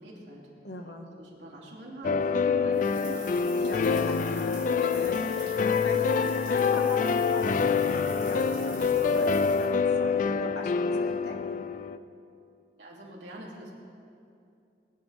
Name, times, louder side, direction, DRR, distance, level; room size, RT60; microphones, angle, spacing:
voice 1, 0.0-0.5 1.2-3.4 12.8-13.7, right 1 dB, 80° right, -4 dB, 3.0 m, -43 dB
voice 2, 0.6-1.1 3.6-11.7, left 1 dB, 70° left, 3 dB, 1.5 m, -40 dB
sound 1, 2.0-12.0, left 5 dB, 45° left, 0.4 m, -26 dB
sound 2, 2.7-9.7, right 4 dB, 25° right, 2.4 m, -46 dB
22.5 x 9.8 x 3.5 m, 2.6 s
head